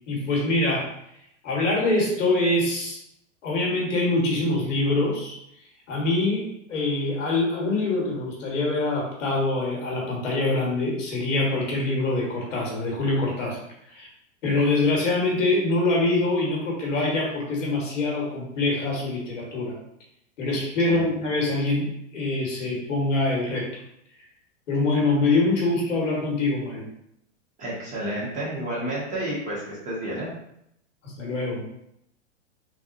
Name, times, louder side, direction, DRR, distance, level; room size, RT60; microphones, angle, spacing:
voice 1, 0.1-0.9 1.4-3.0 3.4-5.3 5.9-13.6 13.9-14.1 14.4-19.7 20.4-23.7 24.7-26.9 31.0-31.7, left 2 dB, 80° left, -3 dB, 1.5 m, -24 dB
voice 2, 27.6-30.3, right 1 dB, 20° right, -6 dB, 1.2 m, -30 dB
3.5 x 2.3 x 2.6 m, 0.76 s
hypercardioid pair, 130°, 37 cm